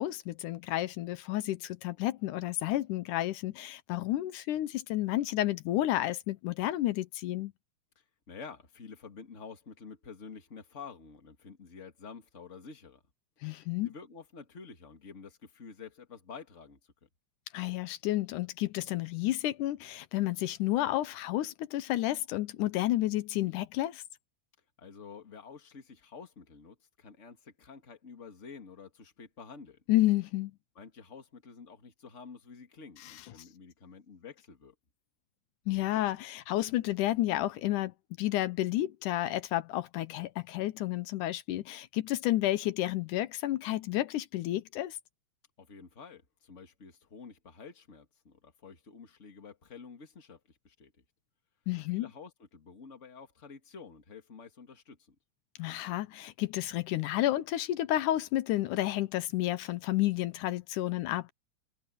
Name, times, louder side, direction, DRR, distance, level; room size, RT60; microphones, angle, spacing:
voice 1, 0.0-7.5 13.4-13.9 17.5-24.0 29.9-30.5 35.7-37.9 38.2-45.0 51.7-52.1 55.6-61.3, left 15 dB, 85° left, 2.3 m, -31 dB
voice 2, 8.0-13.0 13.8-17.1 24.8-29.8 30.7-34.7 45.6-50.9 51.9-55.1, left 5 dB, 25° left, 2.2 m, -49 dB
omnidirectional pair, 3.6 m